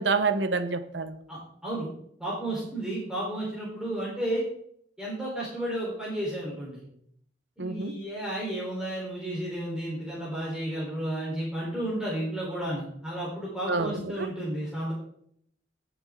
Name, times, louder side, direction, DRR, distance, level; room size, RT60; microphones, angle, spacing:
voice 1, 0.0-1.2 7.6-7.9 13.7-14.3, right 4 dB, 65° right, 1.0 m, -28 dB
voice 2, 1.3-1.9 2.2-4.4 5.0-6.8 7.6-14.9, right 1 dB, 5° right, 3.8 m, -32 dB
18.5 x 7.0 x 3.7 m
head